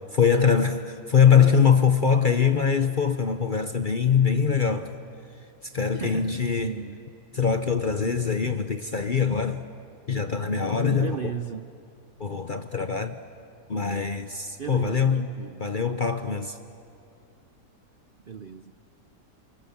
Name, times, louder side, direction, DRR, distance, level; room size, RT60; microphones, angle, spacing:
voice 1, 0.1-4.9 5.6-6.8 7.3-9.6 10.1-11.2 12.2-13.2 13.7-15.3 15.6-16.6, left 6 dB, 45° left, 0.7 m, -23 dB
voice 2, 5.9-7.1 10.7-11.7 14.6-15.7 18.3-18.7, right 7 dB, 60° right, 0.5 m, -35 dB
28.0 x 27.5 x 7.2 m
omnidirectional pair, 1.8 m